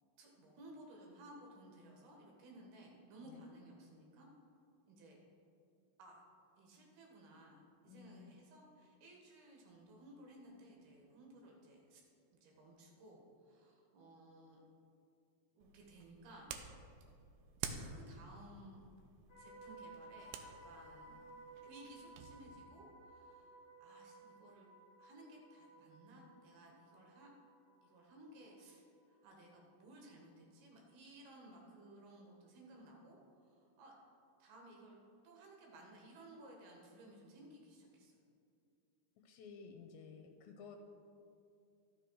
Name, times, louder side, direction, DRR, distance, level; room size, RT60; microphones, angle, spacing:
voice 1, 0.2-4.3 4.8-5.2 6.0-6.3 6.6-12.0 12.4-14.6 15.5-16.5 17.5-18.9 19.4-21.2 21.6-24.7 25.0-27.3 27.8-33.9 34.4-35.0 35.2-38.2, right 1 dB, 65° right, -1 dB, 3.2 m, -58 dB
voice 2, 7.9-8.4 39.2-40.8, left 5 dB, 85° left, 3 dB, 2.9 m, -54 dB
sound 1, 15.6-22.3, right 6 dB, 85° right, 2.2 m, -50 dB
sound 2, 19.3-29.4 29.6-29.9, right 2 dB, 60° left, 1.7 m, -58 dB
12.5 x 6.5 x 4.7 m, 2.5 s
omnidirectional pair, 5.1 m